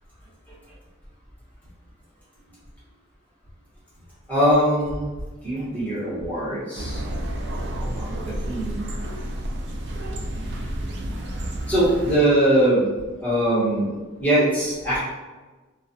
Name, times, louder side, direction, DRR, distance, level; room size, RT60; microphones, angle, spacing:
voice 1, 4.3-5.1 5.4-7.0 7.8-8.9 11.7-12.9 13.2-13.9 14.2-15.0, right 1 dB, 10° left, -11 dB, 1.0 m, -22 dB
sound 1, 6.7-12.2, right 1 dB, 70° right, 0.4 m, -30 dB
2.3 x 2.3 x 2.6 m, 1.3 s
head